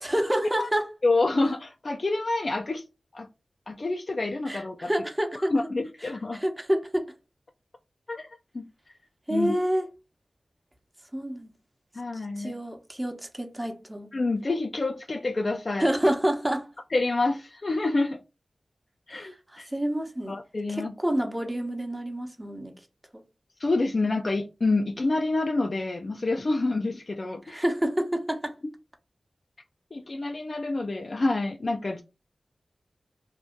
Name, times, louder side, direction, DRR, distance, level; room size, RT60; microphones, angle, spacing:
voice 1, 0.0-0.9 4.5-5.5 6.3-7.1 9.3-9.9 11.1-11.5 12.4-14.1 15.8-16.7 19.1-20.4 20.7-22.7 23.1-23.2 27.5-28.5, right 1 dB, 15° right, 0.8 m, -28 dB
voice 2, 1.0-2.8 3.1-3.3 3.7-4.9 5.3-6.4 8.1-8.3 8.5-8.6 9.3-9.6 12.0-12.5 14.1-15.9 16.9-18.2 19.1-19.7 20.3-20.9 23.6-27.6 29.9-32.0, left 2 dB, 55° left, 0.4 m, -27 dB
2.6 x 2.4 x 3.5 m
cardioid pair, 45°, 0 cm